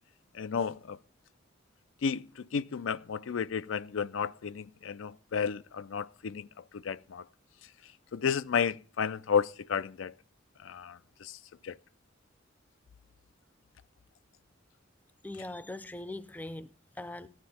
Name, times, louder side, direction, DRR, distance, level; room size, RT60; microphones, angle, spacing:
voice 1, 0.3-1.0 2.0-7.2 8.1-10.1 10.6-11.4 11.6-11.8, left 6 dB, 85° left, 0.4 m, -32 dB
voice 2, 15.2-17.3, left 2 dB, 10° left, 0.5 m, -41 dB
14.5 x 9.6 x 4.2 m
head